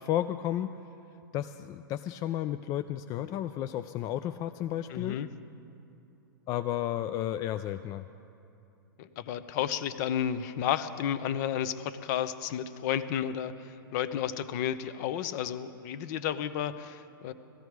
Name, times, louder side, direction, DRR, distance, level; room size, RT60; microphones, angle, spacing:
voice 1, 0.0-0.8 1.3-5.2 6.5-8.0, left 12 dB, 30° left, 10 dB, 0.4 m, -32 dB
voice 2, 4.9-5.3 9.0-17.3, left 9 dB, 50° left, 13 dB, 0.8 m, -32 dB
17.5 x 14.0 x 4.7 m, 2.8 s
hypercardioid pair, 125°, 12 cm